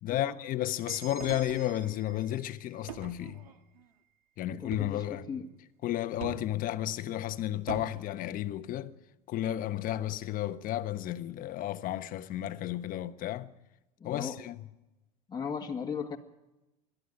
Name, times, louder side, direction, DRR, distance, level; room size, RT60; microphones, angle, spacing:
voice 1, 0.0-3.4 4.4-5.3 5.8-8.9 9.3-13.5 14.0-14.6, left 13 dB, 45° left, 1.2 m, -33 dB
sound 1, 0.9-4.7, right 5 dB, 15° right, 7.7 m, -51 dB
sound 2, 1.2-2.1 2.9-3.9 4.7-5.1 6.2-6.6 7.7-8.0, right 7 dB, 85° right, 1.7 m, -43 dB
voice 2, 4.5-5.5 14.0-14.4 15.3-16.2, left 6 dB, 20° left, 1.9 m, -37 dB
22.0 x 13.5 x 9.7 m
hypercardioid pair, 90°, 19 cm